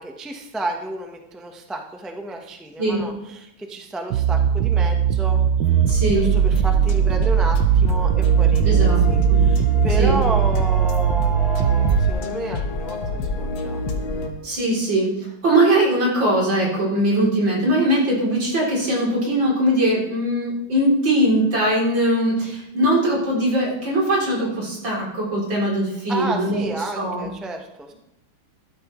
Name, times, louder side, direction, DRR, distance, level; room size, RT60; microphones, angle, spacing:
voice 1, 0.0-5.4 6.1-8.8 9.1-13.8 26.1-27.9, right 2 dB, ahead, 3 dB, 0.4 m, -31 dB
sound 1, 4.1-12.1, right 9 dB, 75° right, 1.0 m, -19 dB
sound 2, 5.6-14.3, left 2 dB, 65° left, 2.0 m, -28 dB
voice 2, 5.9-6.3 8.6-9.0 9.3-9.4 10.0-10.2 14.4-15.2 15.4-27.3, right 1 dB, 60° right, -4 dB, 4.2 m, -21 dB
14.5 x 12.0 x 3.2 m, 0.86 s
omnidirectional pair, 2.4 m